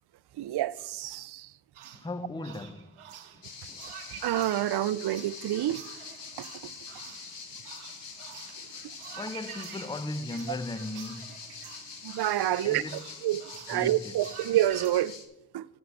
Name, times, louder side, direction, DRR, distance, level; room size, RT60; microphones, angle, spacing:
voice 1, 0.4-1.5 4.2-5.8 6.4-6.7 8.8-8.9 12.0-12.8 13.2-13.4 13.7-15.2 15.5-15.7, right 13 dB, 55° right, 0.5 m, -28 dB
sound 1, 1.7-14.9, right 9 dB, 80° right, 0.9 m, -48 dB
voice 2, 1.9-3.0 3.3-3.4 3.7-3.9 8.7-11.5 12.6-13.1 13.7-14.2, left 2 dB, 10° left, 0.6 m, -38 dB
sound 2, 3.4-15.3, left 5 dB, 55° left, 1.7 m, -44 dB
8.0 x 6.3 x 6.4 m
cardioid pair, 55°, 50 cm